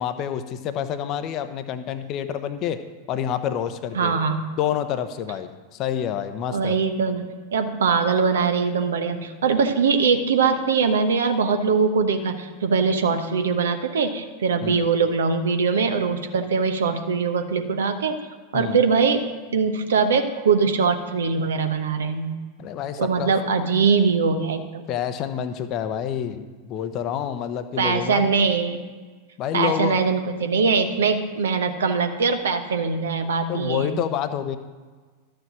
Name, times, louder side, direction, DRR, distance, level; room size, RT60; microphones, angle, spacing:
voice 1, 0.0-2.8 3.1-4.2 4.6-6.8 14.6-14.9 18.5-18.8 22.6-23.3 24.9-28.3 29.4-30.2 33.5-34.6, left 9 dB, 35° left, 10 dB, 0.8 m, -28 dB
voice 2, 3.9-4.4 6.5-7.2 7.5-18.2 18.5-19.3 19.5-22.4 23.0-24.8 27.8-28.8 29.5-34.0, right 5 dB, 65° right, 7 dB, 1.1 m, -22 dB
12.5 x 6.7 x 6.2 m, 1.4 s
figure-of-eight pair, 90°, 0 cm